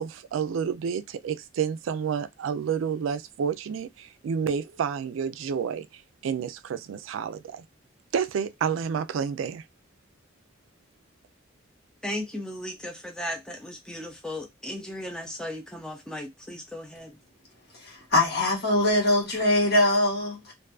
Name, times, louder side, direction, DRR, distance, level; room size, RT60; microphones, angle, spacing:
voice 1, 0.0-7.6 8.1-9.7, right 7 dB, 90° right, 0.3 m, -30 dB
voice 2, 12.0-17.2, left 1 dB, 5° left, 0.4 m, -36 dB
voice 3, 17.8-20.5, left 1 dB, 55° left, 1.2 m, -22 dB
2.5 x 2.3 x 2.2 m
head